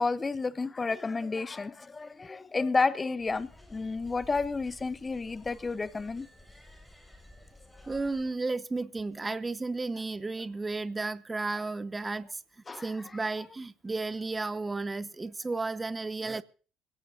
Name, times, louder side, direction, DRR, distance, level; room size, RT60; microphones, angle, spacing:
voice 1, 0.0-6.3 12.7-12.9, left 4 dB, 25° left, 0.8 m, -31 dB
sound 1, 3.2-8.3, left 1 dB, 5° left, 5.4 m, -53 dB
voice 2, 7.9-12.4 12.8-16.4, right 3 dB, 20° right, 1.0 m, -33 dB
24.5 x 17.0 x 2.6 m
figure-of-eight pair, 50°, 0 cm